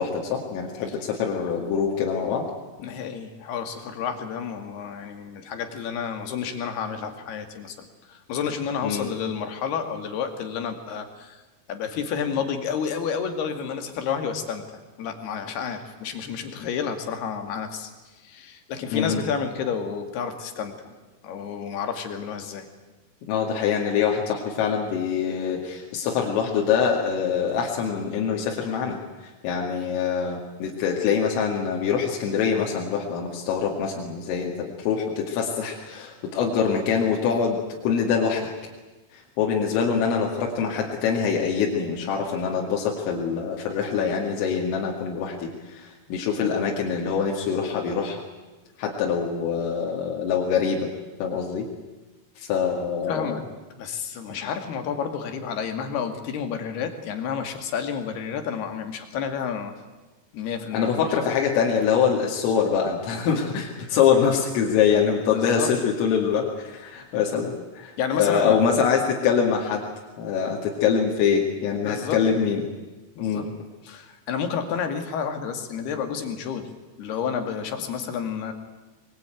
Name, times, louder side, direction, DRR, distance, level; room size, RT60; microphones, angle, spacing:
voice 1, 0.0-2.5 8.8-9.1 18.9-19.2 23.3-29.0 29.4-38.5 39.1-48.2 48.8-50.9 51.2-51.7 52.4-53.4 60.7-69.9 70.2-72.7 73.2-73.5, left 6 dB, 85° left, -1 dB, 5.0 m, -24 dB
voice 2, 2.8-11.4 11.7-14.6 15.0-17.9 18.2-21.0 21.2-22.7 53.1-53.4 53.7-59.7 60.3-61.2 65.3-65.7 68.0-68.6 71.8-72.2 73.2-73.5 73.8-76.7 77.0-78.5, left 7 dB, 60° left, 7 dB, 3.8 m, -30 dB
24.0 x 22.0 x 9.2 m, 1.2 s
omnidirectional pair, 5.7 m